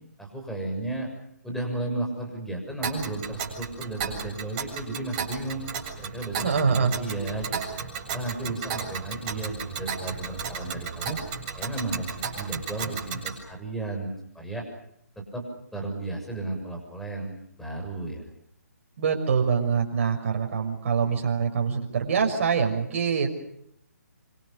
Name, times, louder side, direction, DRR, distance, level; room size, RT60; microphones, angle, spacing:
voice 1, 0.2-1.1 1.4-5.7 6.0-7.6 8.1-11.2 11.5-14.6 15.2-15.4 15.7-18.3, right 2 dB, ahead, 0 dB, 7.0 m, -34 dB
Tick, 2.8-13.4, right 6 dB, 30° right, 7.6 m, -34 dB
voice 2, 6.4-6.9 19.0-23.3, right 6 dB, 50° right, 4 dB, 6.2 m, -24 dB
27.0 x 26.5 x 6.8 m, 0.73 s
figure-of-eight pair, 145°, 9 cm